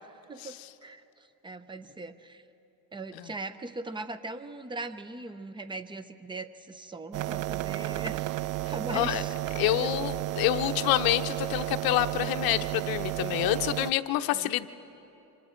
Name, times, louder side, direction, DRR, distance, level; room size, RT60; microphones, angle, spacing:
voice 1, 0.0-2.4 2.9-8.3 8.7-9.9 10.6-10.7 14.3-14.5, right 2 dB, 15° right, 11 dB, 0.7 m, -40 dB
sound 1, 7.1-13.9, right 16 dB, 60° right, 0.5 m, -32 dB
voice 2, 8.9-9.2 9.6-14.7, left 15 dB, 70° left, 10 dB, 0.8 m, -27 dB
27.0 x 25.5 x 4.4 m, 2.9 s
cardioid pair, 135°, 37 cm